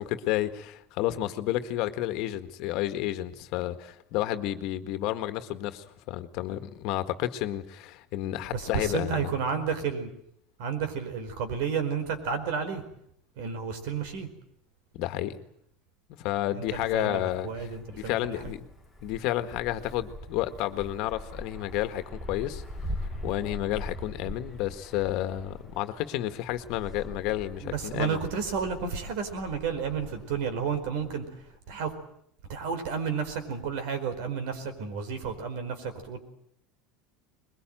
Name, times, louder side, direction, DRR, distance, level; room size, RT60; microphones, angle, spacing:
voice 1, 0.0-9.3 14.9-15.4 16.2-18.6 19.0-22.6 23.2-28.2, left 14 dB, 55° left, 1.7 m, -31 dB
voice 2, 8.5-10.1 10.6-12.8 13.4-14.3 16.5-18.3 27.6-31.2 31.7-31.9 32.5-36.2, right 6 dB, 65° right, 4.7 m, -31 dB
Wind, 16.7-31.6, left 1 dB, 5° right, 3.4 m, -42 dB
22.0 x 22.0 x 9.1 m
supercardioid pair, 155°, 0 cm